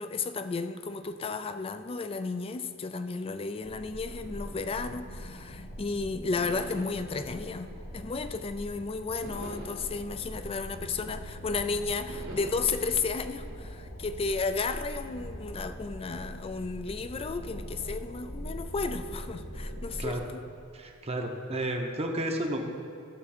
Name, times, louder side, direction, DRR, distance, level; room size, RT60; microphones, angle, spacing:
voice 1, 0.0-20.2, left 4 dB, 25° left, 10 dB, 0.4 m, -33 dB
sound 1, 3.6-20.2, equal, 65° left, 1.5 m, -42 dB
sound 2, 4.0-5.8 6.4-8.6 9.2-11.5 12.1-14.3, right 1 dB, 75° right, 2.1 m, -47 dB
voice 2, 20.7-22.6, right 1 dB, 30° right, 2 dB, 0.9 m, -32 dB
12.0 x 7.1 x 4.3 m, 2.6 s
head